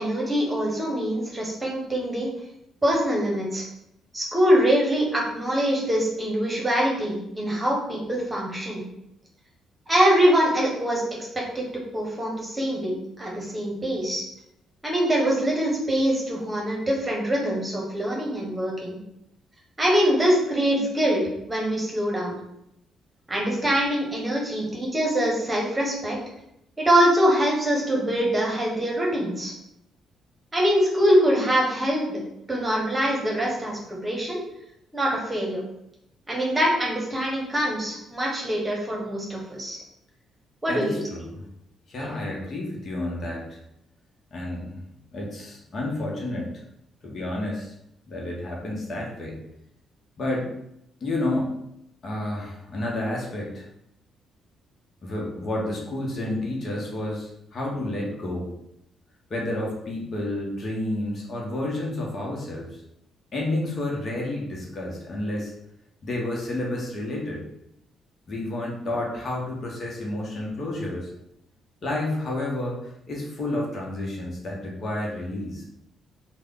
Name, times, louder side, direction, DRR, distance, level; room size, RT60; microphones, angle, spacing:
voice 1, 0.0-2.3 2.8-3.6 4.1-8.8 9.9-11.0 11.3-14.2 14.8-19.0 19.8-21.2 21.5-22.3 23.3-26.2 26.8-29.5 30.5-32.2 32.5-34.4 34.9-35.6 36.3-39.8 40.6-41.0 42.0-42.1, equal, 25° right, -2 dB, 1.2 m, -24 dB
voice 2, 40.7-41.4 41.9-43.6 44.3-44.8 45.1-46.5 47.0-47.7 48.1-49.4 50.2-50.5 51.0-51.5 52.0-53.7 55.0-58.5 59.3-62.8 63.3-65.5 66.0-67.4 68.3-71.1 71.8-75.6, left 1 dB, 50° left, -2 dB, 1.0 m, -30 dB
3.3 x 2.3 x 3.7 m, 0.80 s
supercardioid pair, 60°, 0 cm